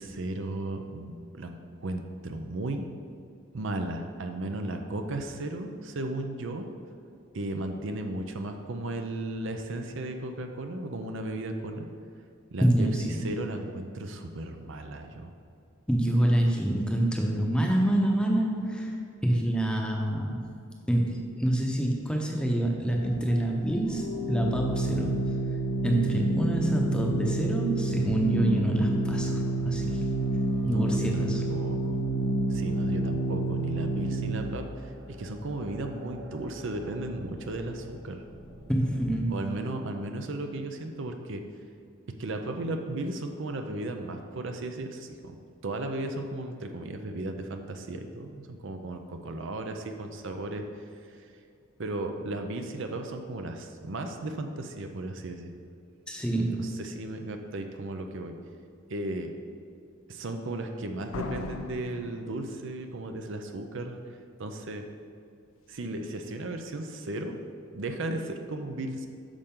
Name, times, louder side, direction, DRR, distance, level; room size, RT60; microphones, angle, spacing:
voice 1, 0.0-2.8 3.5-6.7 7.3-11.9 12.5-15.3 26.1-26.3 30.7-32.0 32.5-34.9 35.2-38.2 39.3-41.4 42.2-45.4 45.6-51.2 51.8-55.5 56.5-58.3 58.9-59.3 60.1-64.0 64.4-64.8 65.7-67.3 67.7-69.1, right 2 dB, 60° right, 5 dB, 0.6 m, -35 dB
voice 2, 12.6-13.2 15.9-18.9 19.2-20.4 20.9-24.0 24.3-25.3 25.8-30.0 30.6-31.4 38.7-39.3 56.1-56.6, right 1 dB, 5° left, 0 dB, 0.8 m, -26 dB
sound 1, 22.8-39.1, left 1 dB, 80° right, 1.6 m, -47 dB
Organ, 23.9-34.6, right 2 dB, 35° left, 0.7 m, -29 dB
Slam, 61.1-63.0, left 3 dB, 75° left, 0.6 m, -38 dB
8.7 x 6.5 x 3.8 m, 2.5 s
head